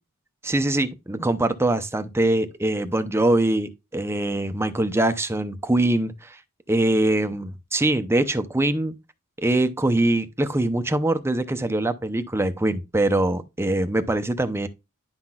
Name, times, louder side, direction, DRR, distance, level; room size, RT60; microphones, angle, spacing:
voice 1, 0.4-6.4 6.7-8.9 9.4-14.7, right 1 dB, 10° right, 0.6 m, -23 dB
10.5 x 5.8 x 2.3 m
head